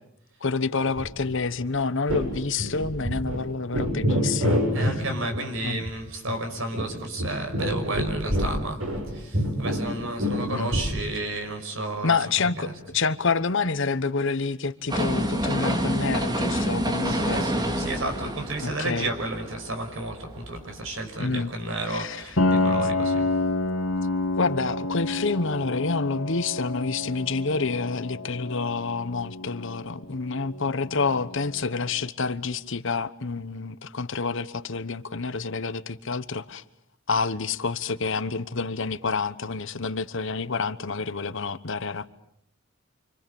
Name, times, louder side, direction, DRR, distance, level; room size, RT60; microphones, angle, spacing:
voice 1, 0.4-5.0 5.6-5.8 10.5-10.8 12.0-12.7 12.9-17.4 17.7-17.8 18.6-19.1 21.2-21.5 21.9-22.2 24.4-36.6 37.1-42.1, left 4 dB, 65° left, 1.1 m, -28 dB
sound 1, 1.0-1.3 1.6-1.7 2.1-2.3 2.6-3.4 3.7-5.0 5.3-5.5 5.8-5.9 6.3-6.4 6.7-9.1 9.3-10.9, equal, 90° right, 7.7 m, -26 dB
voice 2, 4.7-8.8 9.1-12.8 17.0-23.3, right 2 dB, 70° right, 5.6 m, -32 dB
sound 2, 14.9-20.9 21.3-21.4, equal, 20° right, 2.6 m, -28 dB
Piano, 22.4-31.9, left 2 dB, 80° left, 2.1 m, -29 dB
29.0 x 26.0 x 7.1 m
head